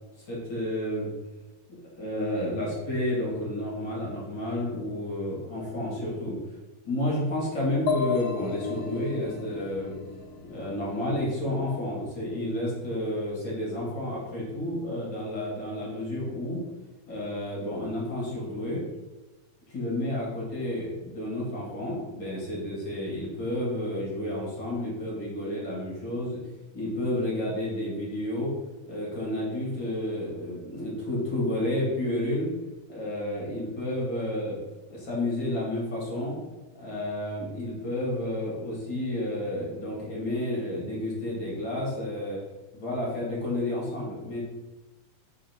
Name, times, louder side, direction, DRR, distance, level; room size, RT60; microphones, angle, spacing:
voice 1, 0.3-1.1 1.7-6.4 6.8-9.9 10.4-16.6 17.1-18.8 19.7-26.4 26.7-28.5 28.9-32.5 32.9-34.6 34.9-36.4 36.7-42.4 42.7-44.4, left 1 dB, 35° left, -5 dB, 3.0 m, -31 dB
sound 1, 7.9-11.5, left 6 dB, 70° left, 2.1 m, -33 dB
5.5 x 4.9 x 6.2 m, 1.1 s
omnidirectional pair, 3.9 m